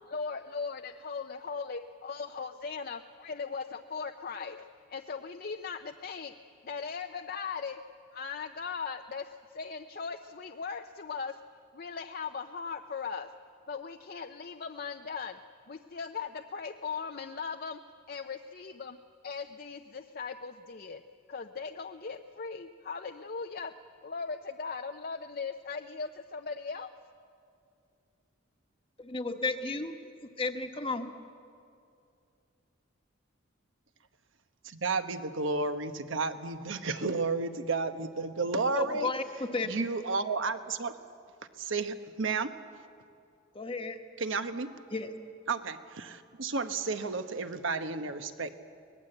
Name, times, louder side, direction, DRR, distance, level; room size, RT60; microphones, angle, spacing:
voice 1, 0.1-6.3 6.6-7.8 8.1-11.3 11.7-13.3 13.7-15.4 15.7-17.8 18.1-19.0 19.2-21.0 21.3-23.7 24.0-26.9, left 5 dB, 45° left, 6 dB, 0.6 m, -38 dB
voice 2, 29.0-29.9 30.4-31.1 38.7-39.7 43.5-44.0 44.9-45.1, left 3 dB, 25° left, 6 dB, 1.2 m, -33 dB
voice 3, 34.6-39.1 39.6-41.0 41.6-42.5 44.2-44.7 45.5-48.6, right 3 dB, 70° right, 9 dB, 1.1 m, -32 dB
24.0 x 19.5 x 7.9 m, 2.5 s
head